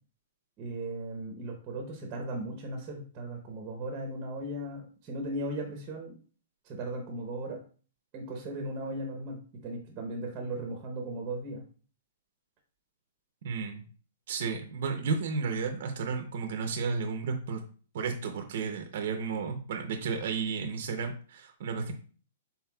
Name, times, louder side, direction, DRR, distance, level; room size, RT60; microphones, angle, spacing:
voice 1, 0.6-6.1 6.6-7.6 8.1-11.6, right 1 dB, 25° right, 2 dB, 0.8 m, -37 dB
voice 2, 13.4-13.8 14.3-17.6 17.9-21.9, right 5 dB, 55° right, 4 dB, 0.7 m, -33 dB
5.7 x 4.1 x 2.3 m, 0.40 s
hypercardioid pair, 165°, 0 cm